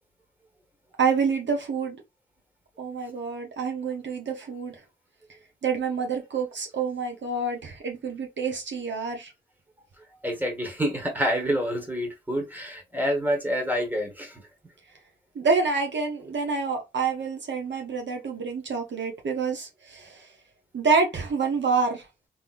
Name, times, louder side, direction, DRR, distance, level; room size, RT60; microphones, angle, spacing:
voice 1, 1.0-2.0 2.8-4.8 5.6-9.3 15.3-20.3 20.7-22.1, right 5 dB, 65° right, 0.9 m, -27 dB
voice 2, 10.2-14.4, equal, 10° right, 1.5 m, -27 dB
3.7 x 2.9 x 2.5 m
cardioid pair, 75°, 20 cm